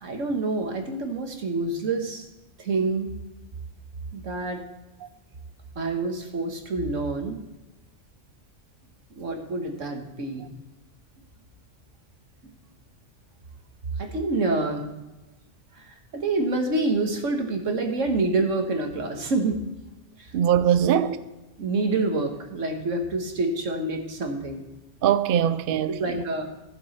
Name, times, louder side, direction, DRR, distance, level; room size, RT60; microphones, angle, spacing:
voice 1, 0.0-2.3 2.6-3.1 4.1-4.6 5.8-7.4 9.2-10.5 14.0-14.9 15.8-19.6 20.2-20.3 20.8-21.2 21.6-24.6 25.9-26.5, right 3 dB, 80° right, 1.8 m, -27 dB
voice 2, 20.3-21.2 25.0-26.2, right 10 dB, 60° right, 0.6 m, -22 dB
15.0 x 7.2 x 4.2 m
omnidirectional pair, 1.3 m